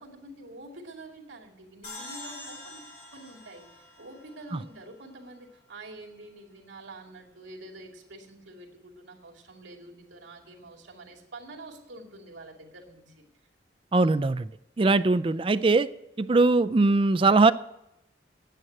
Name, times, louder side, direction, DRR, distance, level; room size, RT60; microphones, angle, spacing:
voice 1, 0.0-2.8 3.1-13.2, right 2 dB, 85° right, 1 dB, 2.4 m, -47 dB
sound 1, 1.8-5.1, left 2 dB, 50° left, 5.6 m, -45 dB
voice 2, 13.9-14.5 14.8-15.9 16.2-17.5, right 3 dB, 30° right, 14 dB, 0.4 m, -21 dB
9.2 x 8.7 x 9.2 m, 0.86 s
head